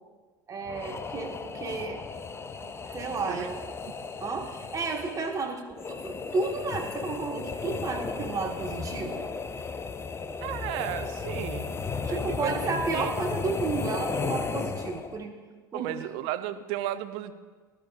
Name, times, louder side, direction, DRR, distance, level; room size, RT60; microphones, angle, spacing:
voice 1, 0.5-2.0 2.9-3.6 4.2-9.3 12.1-15.3 15.7-16.1, right 4 dB, 30° right, 2 dB, 1.8 m, -32 dB
sound 1, 0.7-15.2, left 5 dB, 20° left, 0.7 m, -35 dB
voice 2, 2.6-3.0 3.3-3.5 10.4-12.6 12.9-13.1 15.7-17.3, right 13 dB, 55° right, 11 dB, 0.7 m, -34 dB
19.5 x 12.5 x 2.6 m, 1.4 s
figure-of-eight pair, 70°, 12 cm